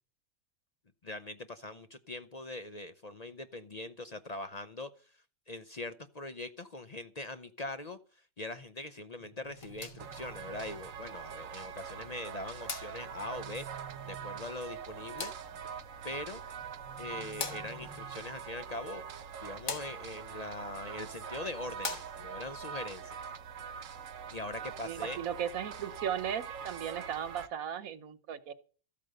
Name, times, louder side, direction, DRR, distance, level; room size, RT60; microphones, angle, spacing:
voice 1, 1.0-4.9 5.5-8.0 8.4-15.3 16.0-16.4 17.0-19.0 19.4-23.2 24.3-25.2, left 2 dB, 40° left, 10 dB, 0.7 m, -42 dB
sound 1, 9.2-11.2 12.9-14.9 16.6-18.6, right 5 dB, 40° right, 0.9 m, -52 dB
sound 2, 9.4-22.5, left 5 dB, 90° left, 2.1 m, -46 dB
sound 3, 10.0-27.5, right 7 dB, 70° right, 1.2 m, -44 dB
voice 2, 24.8-28.5, right 9 dB, 85° right, 14 dB, 1.4 m, -36 dB
14.0 x 8.6 x 6.6 m, 0.40 s
omnidirectional pair, 1.4 m